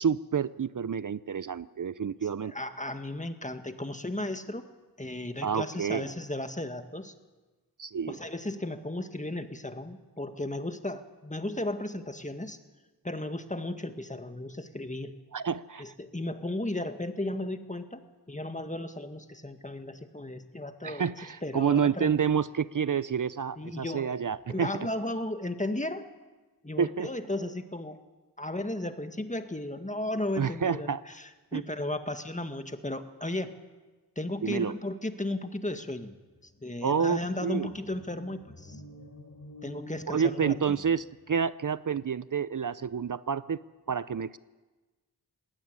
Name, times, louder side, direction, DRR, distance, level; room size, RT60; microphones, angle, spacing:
voice 1, 0.0-2.5 5.4-6.0 7.8-8.2 15.3-15.9 20.8-24.7 26.8-27.1 30.4-31.0 31.5-31.6 34.4-34.7 36.8-37.7 40.1-43.6 43.9-44.4, right 7 dB, 55° right, 16 dB, 0.6 m, -29 dB
voice 2, 2.4-4.7 5.0-7.1 8.1-12.6 13.0-15.2 15.8-18.0 18.3-21.1 21.4-22.2 23.6-24.2 24.5-26.1 26.6-28.0 28.4-33.6 34.2-36.2 36.6-38.8 39.6-40.8, left 1 dB, 20° left, 8 dB, 1.8 m, -35 dB
sound 1, 36.3-41.4, left 1 dB, 45° left, 5.5 m, -49 dB
19.5 x 17.5 x 9.7 m, 1.2 s
wide cardioid pair, 45°, 38 cm